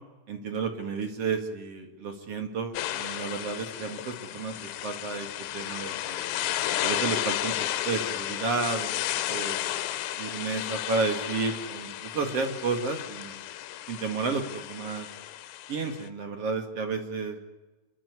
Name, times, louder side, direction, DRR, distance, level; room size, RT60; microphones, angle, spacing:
voice 1, 0.3-6.2 6.8-9.0 9.3-9.6 10.2-13.3 13.9-15.1 15.7-17.4, right 4 dB, 45° right, 5 dB, 2.1 m, -32 dB
sound 1, 2.7-16.1, left 13 dB, 80° left, 3.1 m, -33 dB
28.5 x 12.0 x 9.6 m, 1.1 s
omnidirectional pair, 5.3 m